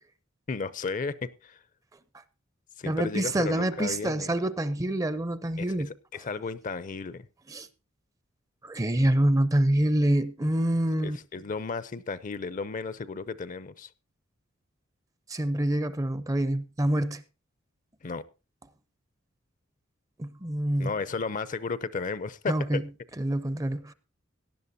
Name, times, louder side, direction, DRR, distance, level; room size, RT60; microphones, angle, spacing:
voice 1, 0.5-1.6 2.8-4.3 5.6-7.3 11.0-13.9 18.0-18.3 20.8-22.8, left 4 dB, 40° left, 0.5 m, -34 dB
voice 2, 2.8-5.9 7.5-7.7 8.6-11.2 15.3-17.2 20.2-20.9 22.5-22.8 23.2-23.9, right 1 dB, 15° right, 0.5 m, -26 dB
17.5 x 11.0 x 2.7 m
head